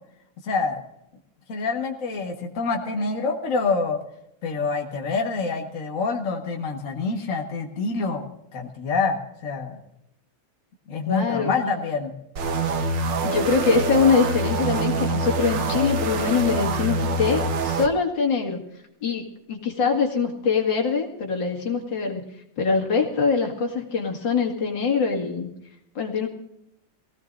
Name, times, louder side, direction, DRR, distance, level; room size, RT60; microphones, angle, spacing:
voice 1, 0.4-0.8 1.5-4.0 4.4-8.3 8.5-9.8 10.9-12.1, left 4 dB, 45° left, 1 dB, 1.9 m, -26 dB
voice 2, 11.1-11.5 13.2-18.6 19.0-22.2 22.6-25.5 25.9-26.3, left 5 dB, 75° left, 1 dB, 2.8 m, -23 dB
sound 1, 12.4-17.9, right 3 dB, 75° right, 1.8 m, -25 dB
24.0 x 17.0 x 2.6 m, 0.80 s
omnidirectional pair, 2.0 m